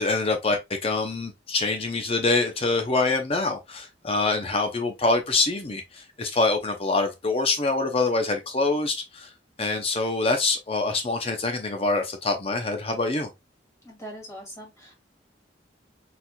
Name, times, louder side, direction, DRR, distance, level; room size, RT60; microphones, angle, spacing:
voice 1, 0.0-9.3 9.6-13.3, left 3 dB, 30° left, 0.6 m, -25 dB
voice 2, 13.8-14.9, equal, 15° left, 2.2 m, -41 dB
4.3 x 4.0 x 2.2 m
head